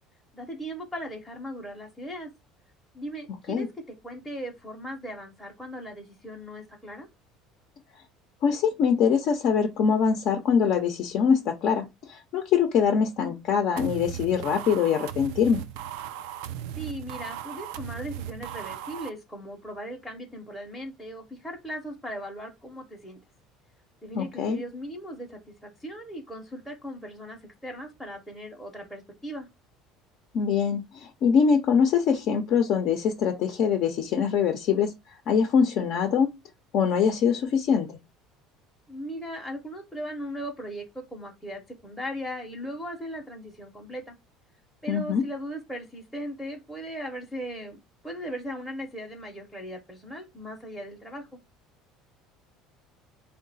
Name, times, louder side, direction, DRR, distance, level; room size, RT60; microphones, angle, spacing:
voice 1, 0.3-2.3 2.9-3.7 4.0-7.1 16.8-23.2 24.0-29.5 38.9-44.2 44.8-51.3, equal, ahead, 0.6 m, -38 dB
voice 2, 8.4-15.6 24.1-24.6 30.3-34.9 35.3-36.3 36.7-38.0 44.9-45.2, left 7 dB, 50° left, 0.5 m, -23 dB
sound 1, 13.8-19.1, right 11 dB, 85° right, 0.4 m, -37 dB
3.7 x 2.1 x 4.0 m
cardioid pair, 155°, 0 cm